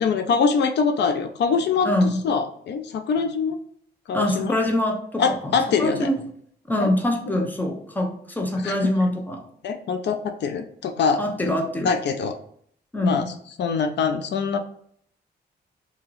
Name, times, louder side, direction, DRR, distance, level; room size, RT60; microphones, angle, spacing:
voice 1, 0.0-1.9 2.2-3.6 4.1-4.6 5.2-6.1 6.8-6.9 7.3-7.5 8.6-8.9 9.6-11.5 11.8-12.4 13.0-13.3 13.6-14.6, left 5 dB, 80° left, 8 dB, 0.4 m, -24 dB
voice 2, 1.8-2.2 4.1-5.5 5.8-6.2 6.7-9.4 11.2-11.9 12.9-13.3, left 1 dB, 10° left, 3 dB, 0.6 m, -24 dB
2.8 x 2.8 x 3.8 m, 0.63 s
wide cardioid pair, 110°, 18 cm